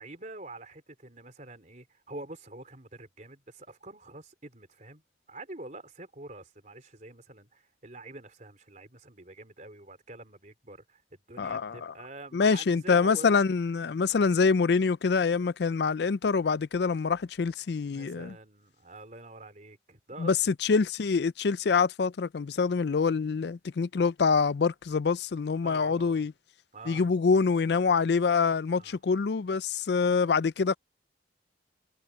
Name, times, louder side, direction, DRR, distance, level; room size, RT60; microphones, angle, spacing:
voice 1, 0.0-5.0 5.3-13.4 17.9-20.5 25.6-26.2 26.7-27.1 28.8-29.0, right 2 dB, 40° right, 3.7 m, -46 dB
voice 2, 11.4-11.9 12.3-18.3 20.2-26.3 26.9-30.8, left 5 dB, 60° left, 0.4 m, -25 dB
head